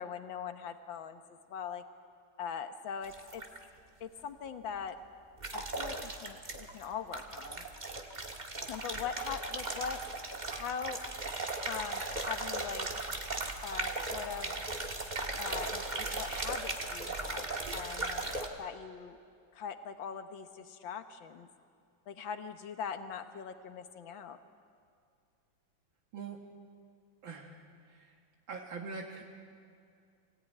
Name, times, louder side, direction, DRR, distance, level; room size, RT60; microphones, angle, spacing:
voice 1, 0.0-1.8 2.4-3.4 4.0-5.0 5.5-7.7 8.7-10.0 10.5-11.0 11.7-12.9 13.6-14.6 15.4-19.2 19.5-21.5 22.1-24.4, left 7 dB, 75° left, 8 dB, 1.9 m, -41 dB
sound 1, 3.0-3.6 5.4-6.9 7.1-18.5, right 2 dB, 25° right, 1.6 m, -37 dB
voice 2, 27.2-27.6 27.9-28.1 28.5-29.2, right 4 dB, 75° right, 1 dB, 2.4 m, -43 dB
24.0 x 17.5 x 9.3 m, 2.3 s
omnidirectional pair, 2.2 m